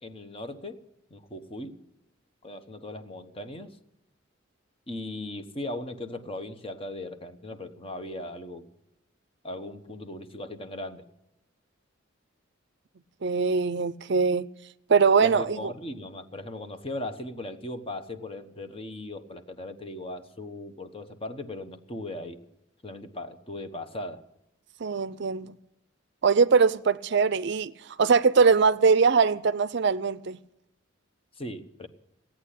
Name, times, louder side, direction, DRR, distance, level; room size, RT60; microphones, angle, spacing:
voice 1, 0.0-0.8 1.1-1.8 2.4-3.8 4.9-8.7 9.4-11.0 15.2-22.4 22.8-24.2 31.3-31.9, left 1 dB, 30° left, 1.1 m, -38 dB
voice 2, 13.2-14.5 14.9-15.7 24.8-25.5 26.2-27.7 28.0-30.4, right 5 dB, 60° right, 0.5 m, -22 dB
16.5 x 8.9 x 10.0 m
head